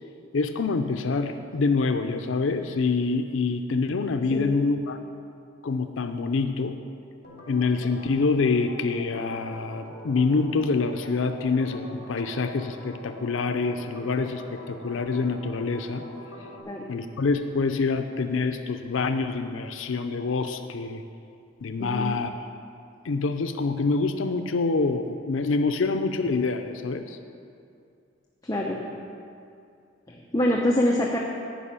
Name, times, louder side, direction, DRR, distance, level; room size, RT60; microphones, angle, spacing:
voice 1, 0.3-5.0 5.6-6.8 7.5-16.0 16.9-21.0 21.6-22.3 23.0-27.2, left 4 dB, 80° left, 8 dB, 0.5 m, -26 dB
voice 2, 4.3-4.7 16.7-16.9 21.8-22.1 28.4-28.8 30.1-31.2, left 1 dB, 20° left, -2 dB, 0.7 m, -25 dB
Organ, 7.2-16.6, left 1 dB, 50° left, 2.8 m, -43 dB
11.0 x 5.5 x 8.8 m, 2.5 s
head